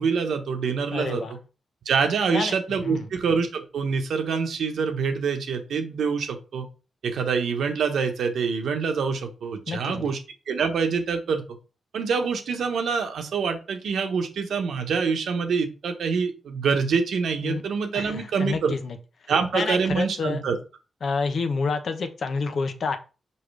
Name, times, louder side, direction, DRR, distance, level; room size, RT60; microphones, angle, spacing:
voice 1, 0.0-1.2 1.8-6.7 7.0-10.2 10.5-11.4 11.9-18.7 19.3-20.6, right 5 dB, 80° right, 5 dB, 1.2 m, -25 dB
voice 2, 0.9-1.3 2.3-3.1 9.7-10.1 17.4-17.6 17.9-19.0 19.5-20.4 21.0-23.0, left 4 dB, 60° left, 8 dB, 1.0 m, -28 dB
5.7 x 5.1 x 3.4 m, 0.33 s
cardioid pair, 105°, 0 cm